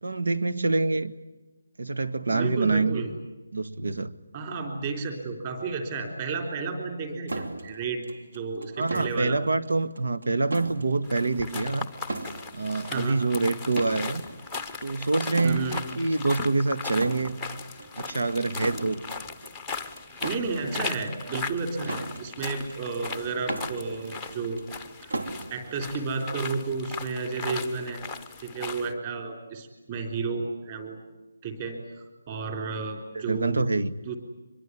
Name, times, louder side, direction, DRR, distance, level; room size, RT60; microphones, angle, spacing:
voice 1, 0.0-1.1 1.8-3.1 3.5-4.1 8.8-11.9 12.5-14.2 14.8-17.4 18.0-19.0 33.1-33.9, right 3 dB, 85° right, 10 dB, 1.7 m, -26 dB
voice 2, 2.3-3.1 4.3-8.0 8.3-9.4 12.8-13.2 15.4-15.8 20.2-24.6 25.5-28.0 28.4-31.0 31.4-31.8 32.3-33.7 34.1-34.2, right 4 dB, 20° right, 4 dB, 3.6 m, -32 dB
sound 1, 7.3-26.7, right 2 dB, 70° right, 3.2 m, -39 dB
sound 2, 11.0-28.9, left 4 dB, ahead, 0.8 m, -38 dB
25.0 x 22.0 x 9.8 m, 1.1 s
hypercardioid pair, 180°, 0 cm